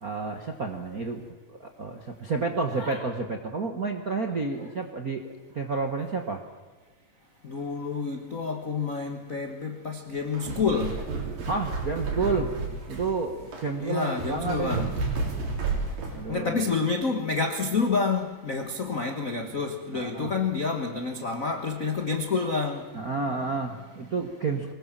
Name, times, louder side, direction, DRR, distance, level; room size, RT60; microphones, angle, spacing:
voice 1, 0.0-1.2 1.5-6.4 11.5-12.5 12.9-14.9 16.1-16.6 19.9-20.3 22.9-24.7, right 4 dB, 55° right, 1.0 m, -30 dB
voice 2, 7.4-11.0 13.8-14.9 16.3-22.8, left 4 dB, 65° left, 0.8 m, -28 dB
sound 1, 10.2-16.2, right 3 dB, 90° right, 5.6 m, -32 dB
24.0 x 20.5 x 7.5 m
omnidirectional pair, 3.9 m